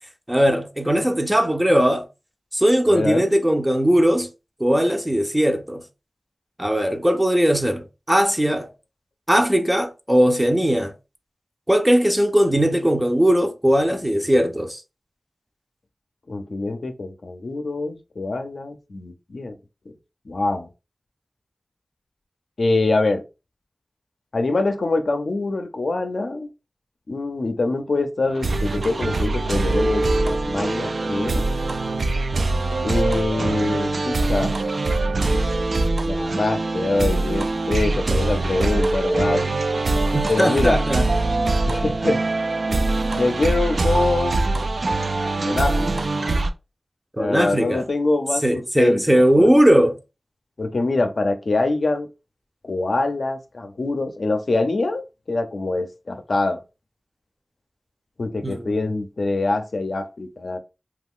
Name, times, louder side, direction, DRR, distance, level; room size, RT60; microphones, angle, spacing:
voice 1, 0.3-2.1 2.5-4.3 4.6-5.8 6.6-8.7 9.3-10.9 11.7-14.8 40.1-41.1 47.1-47.9 48.4-50.0 58.4-58.9, equal, 15° right, 0.5 m, -19 dB
voice 2, 2.9-3.3 16.3-19.5 20.3-20.7 22.6-23.2 24.3-26.5 27.1-31.5 32.8-34.6 36.0-39.5 40.3-40.8 41.7-42.2 42.7-42.8 43.1-44.5 45.4-46.0 47.2-49.5 50.6-52.1 52.6-56.6 58.2-60.6, left 2 dB, 75° left, 0.5 m, -24 dB
sound 1, 28.3-46.5, right 2 dB, 75° right, 0.3 m, -23 dB
2.4 x 2.3 x 3.5 m
wide cardioid pair, 60°, 0 cm